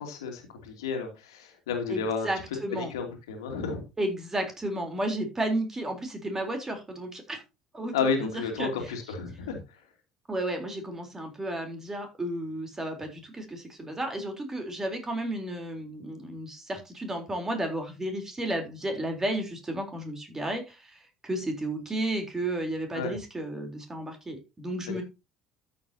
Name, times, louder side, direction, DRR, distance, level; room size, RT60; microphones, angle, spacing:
voice 1, 0.0-2.3 2.7-3.8 7.9-9.6 22.9-23.1, left 5 dB, 70° left, 4 dB, 2.5 m, -31 dB
voice 2, 1.9-2.9 4.0-7.4 7.7-8.0 8.2-8.3 8.6-8.9 10.3-25.0, right 1 dB, 20° right, 5 dB, 3.7 m, -33 dB
13.0 x 7.7 x 2.8 m, 0.27 s
figure-of-eight pair, 60°, 3 cm